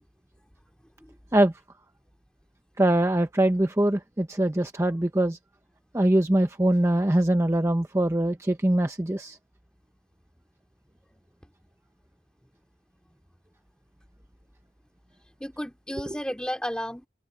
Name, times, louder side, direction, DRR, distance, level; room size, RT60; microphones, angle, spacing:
voice 1, 2.8-5.4 5.9-9.4, right 1 dB, 15° right, 0.7 m, -23 dB
voice 2, 15.4-17.1, equal, 5° left, 2.7 m, -33 dB
open air
head